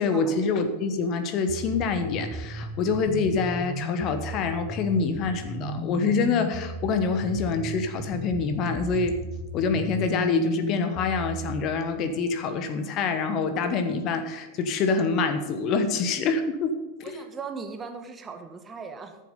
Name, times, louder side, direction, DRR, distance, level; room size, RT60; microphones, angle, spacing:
voice 1, 0.0-9.2 9.5-17.2, left 4 dB, 35° left, 8 dB, 1.2 m, -26 dB
sound 1, 1.5-11.6, left 1 dB, 10° left, 1.4 m, -35 dB
voice 2, 17.0-19.2, right 5 dB, 20° right, 6 dB, 1.4 m, -38 dB
13.5 x 7.6 x 5.4 m, 1.2 s
figure-of-eight pair, 90°, 0 cm